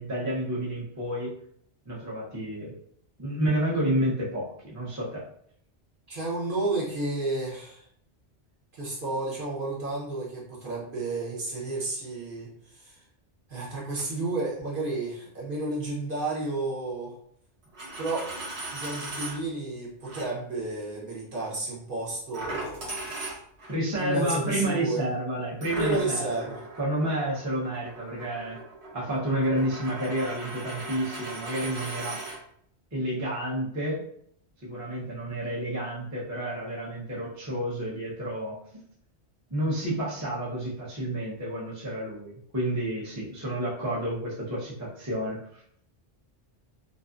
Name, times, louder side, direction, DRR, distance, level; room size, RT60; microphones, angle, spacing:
voice 1, 0.0-1.3 1.9-2.7 3.2-5.2 23.7-26.3 26.8-28.6 28.9-32.2 32.9-34.0 34.6-38.6 39.5-45.6, right 1 dB, 20° right, -6 dB, 0.5 m, -30 dB
voice 2, 6.1-7.9 8.7-13.0 13.5-17.1 18.0-18.3 18.7-23.3 23.9-25.0 25.8-26.6, right 2 dB, 55° right, -6 dB, 0.9 m, -32 dB
Coin (dropping), 17.6-19.4 20.1-20.3 22.3-23.8 25.6-32.4, right 2 dB, 75° right, 1.2 m, -38 dB
2.5 x 2.4 x 2.4 m, 0.67 s
omnidirectional pair, 1.2 m